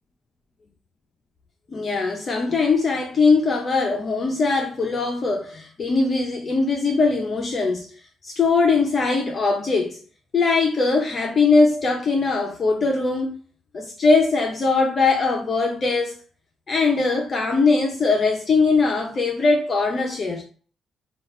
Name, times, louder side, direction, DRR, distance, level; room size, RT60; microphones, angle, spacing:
voice 1, 1.7-7.9 8.2-10.0 10.3-13.4 13.7-16.1 16.7-20.4, left 4 dB, 40° left, 0.6 m, -21 dB
6.1 x 2.4 x 3.2 m
cardioid pair, 90°, 0 cm